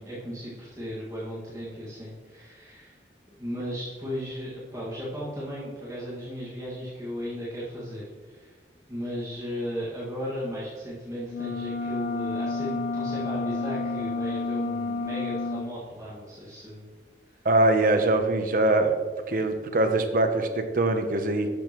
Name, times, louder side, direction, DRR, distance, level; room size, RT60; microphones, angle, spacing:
voice 1, 0.0-3.0 3.3-8.6 8.9-16.9 17.4-17.5, equal, 20° right, -9 dB, 1.8 m, -36 dB
sound 1, 11.3-15.7, left 3 dB, 80° left, 0.6 m, -30 dB
voice 2, 17.4-18.9 19.3-21.5, right 2 dB, 50° right, 6 dB, 0.8 m, -23 dB
11.5 x 6.7 x 3.0 m, 1.5 s
head